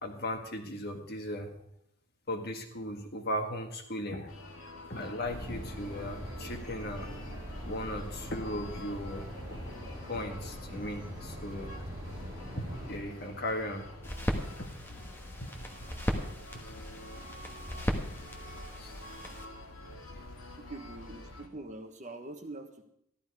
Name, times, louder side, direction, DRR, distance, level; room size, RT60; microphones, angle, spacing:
voice 1, 0.0-1.5 2.3-4.3 4.9-7.1 7.6-9.6 10.0-11.7 12.6-13.9 14.6-15.1 15.4-15.5 18.8-19.0 20.1-20.5, left 1 dB, 50° left, 4 dB, 1.7 m, -37 dB
sound 1, 4.3-21.5, left 1 dB, 75° left, 2.0 m, -47 dB
sound 2, 5.2-13.0, equal, 15° right, 7.1 m, -43 dB
sound 3, 14.0-19.4, equal, 10° left, 1.4 m, -37 dB
voice 2, 20.6-22.8, right 2 dB, 35° right, 5 dB, 1.3 m, -44 dB
14.0 x 12.5 x 4.8 m, 0.75 s
head